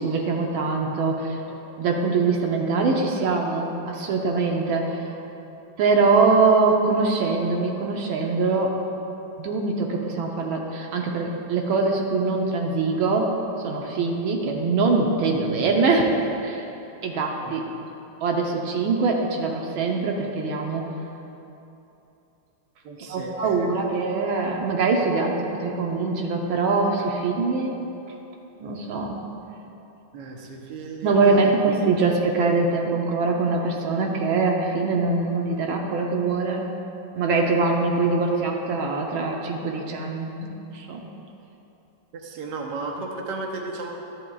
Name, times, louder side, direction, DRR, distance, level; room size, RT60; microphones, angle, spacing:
voice 1, 0.0-1.4 1.8-5.1 5.8-8.8 9.4-13.4 13.6-16.6 17.0-17.6 18.2-20.9 23.1-27.8 28.6-29.2 31.0-36.7 37.1-41.1, right 3 dB, 85° right, 1 dB, 1.6 m, -23 dB
voice 2, 22.8-23.9 30.1-31.5 42.2-43.9, right 3 dB, 65° right, 1 dB, 1.4 m, -34 dB
12.0 x 11.0 x 2.3 m, 2.9 s
omnidirectional pair, 2.2 m